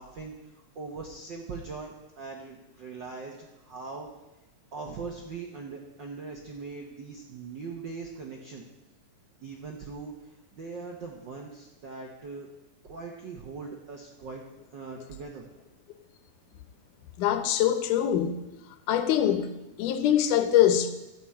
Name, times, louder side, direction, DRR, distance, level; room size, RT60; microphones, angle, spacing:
voice 1, 0.0-4.1 4.7-8.6 9.4-12.5 12.8-14.4 14.7-15.5, right 4 dB, 70° right, 1.0 m, -41 dB
voice 2, 17.2-18.4 18.9-19.5 19.8-20.9, left 10 dB, 90° left, 2.4 m, -23 dB
13.5 x 4.5 x 8.4 m
omnidirectional pair, 3.5 m